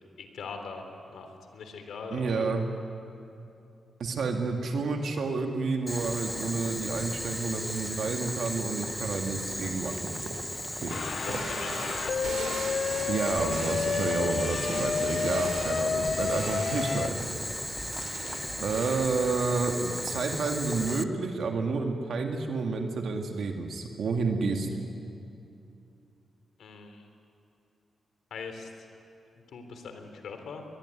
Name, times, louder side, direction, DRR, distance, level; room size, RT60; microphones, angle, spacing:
voice 1, 0.2-0.9 1.1-2.5 10.9-13.0 17.7-17.8 26.6-27.1 28.3-28.7 29.5-30.7, left 5 dB, 80° left, 6 dB, 3.4 m, -42 dB
voice 2, 2.1-2.7 4.0-10.3 10.8-11.0 11.3-11.4 13.1-17.2 18.6-24.9, right 4 dB, 65° right, 3 dB, 2.0 m, -30 dB
Boiling, 5.9-21.0, equal, 5° left, 0.9 m, -36 dB
sound 1, 10.9-17.1, left 6 dB, 50° left, 0.6 m, -31 dB
sound 2, 11.1-19.6, right 4 dB, 85° right, 3.7 m, -41 dB
22.5 x 21.5 x 9.8 m, 2.7 s
wide cardioid pair, 125°, 0 cm